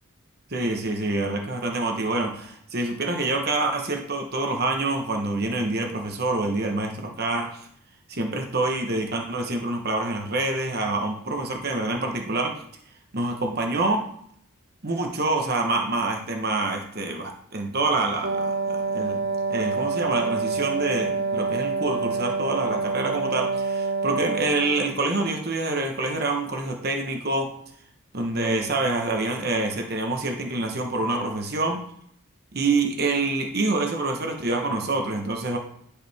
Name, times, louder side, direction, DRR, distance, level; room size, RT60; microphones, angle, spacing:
voice 1, 0.5-7.7 8.1-12.6 13.1-14.1 14.8-19.2 19.5-27.5 28.1-31.8 32.5-35.6, right 2 dB, 45° right, 3 dB, 1.1 m, -26 dB
Wind instrument woodwind instrument, 18.2-25.0, right 4 dB, 80° right, 1.6 m, -27 dB
11.0 x 4.9 x 3.5 m, 0.69 s
head